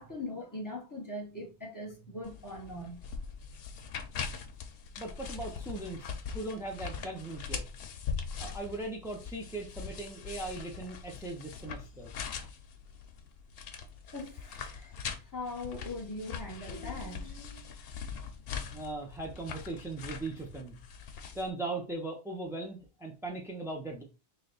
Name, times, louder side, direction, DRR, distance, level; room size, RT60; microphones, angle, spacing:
voice 1, 0.0-3.0 14.1-15.0 15.3-17.6, left 2 dB, 20° left, 1.1 m, -41 dB
sound 1, 2.2-21.5, left 6 dB, 65° left, 0.8 m, -42 dB
voice 2, 5.0-7.6 8.4-12.1 18.7-20.8 21.3-24.0, right 2 dB, 5° right, 0.3 m, -39 dB
3.2 x 2.8 x 3.9 m
omnidirectional pair, 1.1 m